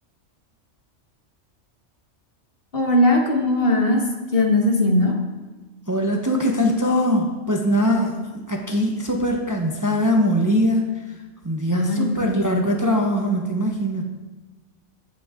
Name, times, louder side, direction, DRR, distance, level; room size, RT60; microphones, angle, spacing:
voice 1, 2.7-4.0 4.3-5.1 11.7-12.6, left 1 dB, 50° left, 1 dB, 1.7 m, -19 dB
voice 2, 5.9-8.2 8.5-11.1 11.4-14.0, equal, 15° right, 1 dB, 0.9 m, -21 dB
16.0 x 7.7 x 3.7 m, 1.2 s
omnidirectional pair, 1.3 m